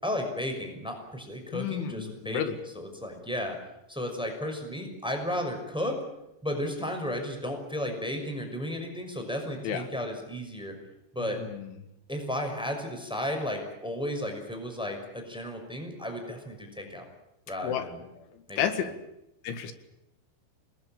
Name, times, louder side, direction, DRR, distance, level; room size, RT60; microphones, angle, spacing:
voice 1, 0.0-2.4 2.8-3.6 3.9-6.0 6.4-10.8 11.1-11.4 12.1-17.1 17.5-18.0 18.5-18.6, left 1 dB, ahead, 4 dB, 5.3 m, -33 dB
voice 2, 1.5-2.6 9.6-9.9 11.2-11.7 17.6-17.9 18.2-18.9 19.4-19.7, left 9 dB, 80° left, 9 dB, 4.2 m, -32 dB
28.0 x 20.0 x 8.9 m, 0.87 s
omnidirectional pair, 5.4 m